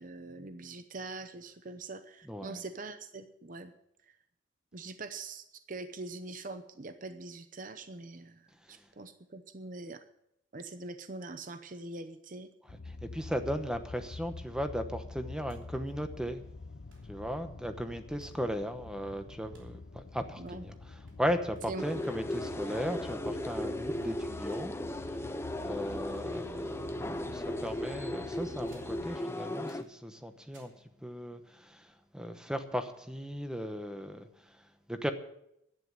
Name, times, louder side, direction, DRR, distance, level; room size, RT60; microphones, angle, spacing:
voice 1, 0.0-3.7 4.1-4.2 4.7-10.0 10.5-12.5 20.4-20.7 21.7-21.8, right 3 dB, 40° right, 9 dB, 0.7 m, -43 dB
voice 2, 2.2-2.6 8.7-8.8 13.0-16.4 17.1-24.8 25.6-30.7 31.0-35.1, equal, 5° right, 8 dB, 1.0 m, -37 dB
sound 1, 12.7-29.2, left 3 dB, 60° left, 0.7 m, -47 dB
sound 2, 15.5-15.6 15.9-16.0 16.9-17.1 18.2-18.5 19.5-19.8 20.5-20.8 21.1-22.5 22.8-24.9 25.6-26.2 26.5-27.0 27.5-28.0 28.7-29.0 29.7-30.0 30.5-30.8, right 1 dB, 70° right, 3.3 m, -60 dB
sound 3, 21.8-29.8, left 1 dB, 15° left, 0.6 m, -37 dB
11.5 x 9.5 x 7.7 m, 0.79 s
head